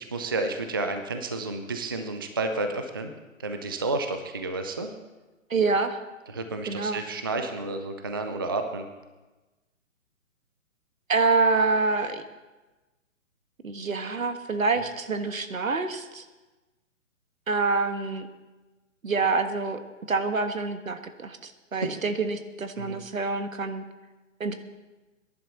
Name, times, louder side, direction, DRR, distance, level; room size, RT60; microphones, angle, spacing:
voice 1, 0.0-3.1 3.4-4.9 6.3-8.8 21.7-21.9 22.8-23.0, right 2 dB, 20° right, 6 dB, 0.4 m, -31 dB
voice 2, 5.5-6.0 6.7-7.0 11.1-12.2 13.6-16.2 17.5-18.3 19.0-19.8 20.1-23.8 24.4-24.5, right 3 dB, 80° right, 9 dB, 1.4 m, -26 dB
21.5 x 11.0 x 4.1 m, 1.2 s
figure-of-eight pair, 135°, 40 cm